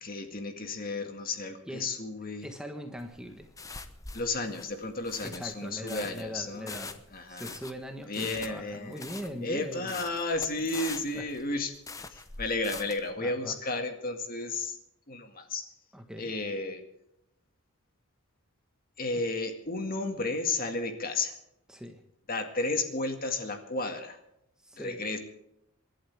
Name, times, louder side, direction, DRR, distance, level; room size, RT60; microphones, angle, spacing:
voice 1, 0.0-2.5 4.1-6.8 7.1-7.5 8.1-9.1 9.4-11.7 12.1-14.8 15.1-15.7 16.2-16.8 19.0-21.3 22.3-24.2 24.8-25.2, left 3 dB, 40° left, 6 dB, 2.0 m, -33 dB
voice 2, 2.4-3.5 5.2-7.0 7.3-9.9 11.1-11.3 13.2-13.6 15.9-16.3 21.7-22.0 24.6-25.0, equal, 5° right, 4 dB, 1.3 m, -41 dB
sound 1, 3.0-13.1, left 3 dB, 15° left, 0.8 m, -43 dB
28.5 x 11.5 x 3.5 m, 0.82 s
head